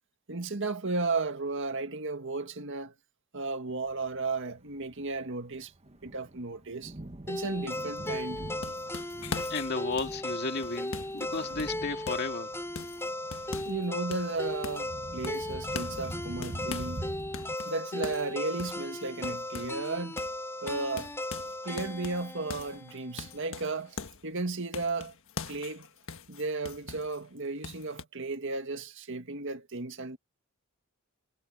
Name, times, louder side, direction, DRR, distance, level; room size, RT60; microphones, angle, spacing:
voice 1, 0.3-2.9 3.3-5.7 6.0-6.9 7.3-8.4 13.6-17.1 17.7-20.2 20.6-21.1 21.6-25.1 25.5-25.9 26.3-30.2, right 3 dB, 55° right, 1.9 m, -34 dB
Thunder, 3.9-17.5, right 1 dB, 30° right, 1.3 m, -45 dB
sound 1, 7.3-23.4, left 1 dB, 10° left, 5.2 m, -37 dB
sound 2, 8.1-12.3 12.8-13.8 14.1-14.9 15.2-17.0 17.3-19.9 20.2-20.4 20.7-24.3 24.7-27.2 27.6-28.0, left 4 dB, 65° left, 1.5 m, -42 dB
voice 2, 9.5-12.5, left 3 dB, 50° left, 2.4 m, -33 dB
head